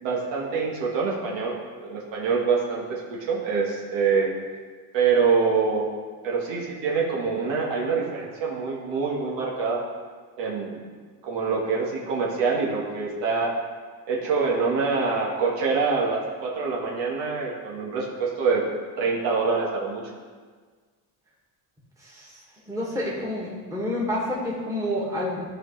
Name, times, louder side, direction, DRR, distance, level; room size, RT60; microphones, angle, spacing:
voice 1, 0.0-1.5 1.8-4.3 4.9-5.9 6.2-9.8 10.4-10.8 11.2-13.5 14.1-18.6 19.0-20.1, right 5 dB, 75° right, -2 dB, 1.5 m, -25 dB
voice 2, 22.0-25.4, left 1 dB, 5° right, -6 dB, 1.8 m, -29 dB
12.0 x 4.5 x 3.2 m, 1.5 s
cardioid pair, 110°, 44 cm